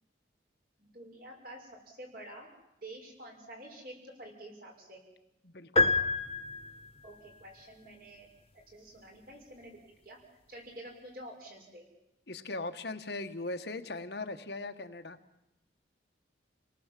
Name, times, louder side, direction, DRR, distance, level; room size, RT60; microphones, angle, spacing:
voice 1, 0.8-2.5 2.8-5.0 7.0-8.3 8.7-9.7 10.0-10.2 10.5-11.9, right 1 dB, 50° right, 1 dB, 6.7 m, -48 dB
voice 2, 5.4-5.9 12.3-15.2, left 2 dB, 60° left, 8 dB, 1.3 m, -39 dB
sound 1, 5.8-7.1, left 2 dB, 30° left, 1.6 m, -28 dB
29.5 x 19.0 x 7.6 m, 0.87 s
head